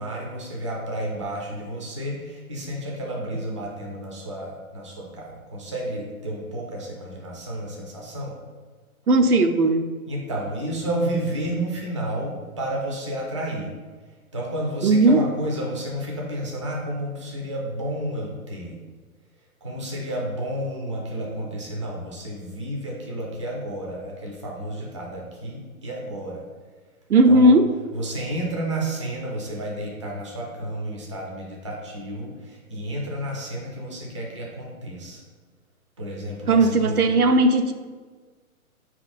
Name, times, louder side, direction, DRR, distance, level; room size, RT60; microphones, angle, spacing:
voice 1, 0.0-8.4 10.1-13.7 14.3-18.8 19.6-26.4 27.3-27.5 27.9-35.2 36.0-37.0, right 1 dB, 25° right, -2 dB, 0.3 m, -31 dB
voice 2, 9.1-9.9 14.8-15.2 27.1-27.7 36.5-37.7, right 2 dB, 85° right, 7 dB, 0.5 m, -17 dB
4.1 x 3.0 x 4.0 m, 1.4 s
figure-of-eight pair, 120°, 44 cm